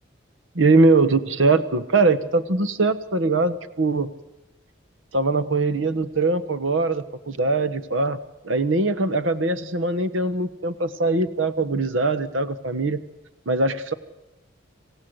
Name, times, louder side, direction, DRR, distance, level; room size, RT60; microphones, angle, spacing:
voice 1, 0.5-4.1 5.1-8.2 8.4-13.0 13.5-13.9, right 3 dB, 85° right, 12 dB, 1.2 m, -21 dB
27.0 x 16.0 x 7.9 m, 1.0 s
head